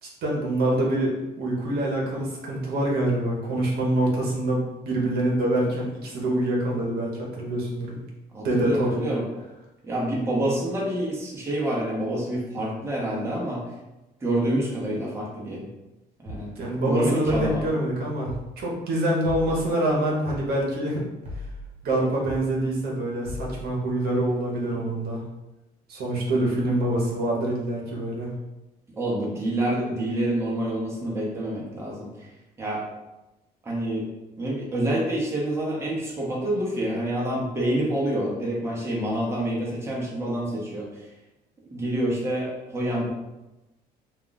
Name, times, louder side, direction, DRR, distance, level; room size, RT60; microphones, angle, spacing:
voice 1, 0.0-8.0 8.4-9.0 16.6-21.0 21.8-25.2 25.9-28.3, right 1 dB, 70° right, -2 dB, 0.9 m, -25 dB
voice 2, 8.3-9.2 9.8-13.7 14.2-15.7 16.2-16.5 16.9-17.6 29.0-32.1 32.6-32.8 33.6-34.1 34.4-41.0 41.7-43.1, right 1 dB, 15° right, -4 dB, 0.8 m, -27 dB
sound 1, 16.3-16.5 17.2-17.6 18.3-18.5 19.2-19.6 20.3-20.5 21.2-21.6 22.3-22.5 23.2-23.6, left 2 dB, 45° right, 1.2 m, -36 dB
2.4 x 2.3 x 3.8 m, 1.0 s
cardioid pair, 110°, 17 cm